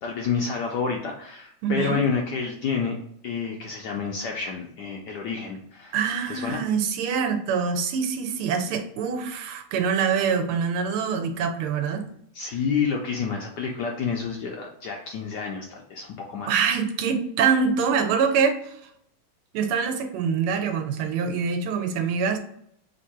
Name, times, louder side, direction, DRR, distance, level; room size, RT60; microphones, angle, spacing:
voice 1, 0.0-3.0 3.2-6.0 6.3-6.6 12.3-16.6, left 5 dB, 75° left, 1 dB, 1.0 m, -29 dB
voice 2, 1.6-2.0 5.9-12.1 16.5-18.7 19.5-22.4, right 6 dB, 85° right, 6 dB, 1.5 m, -25 dB
3.6 x 2.6 x 4.2 m, 0.70 s
omnidirectional pair, 2.3 m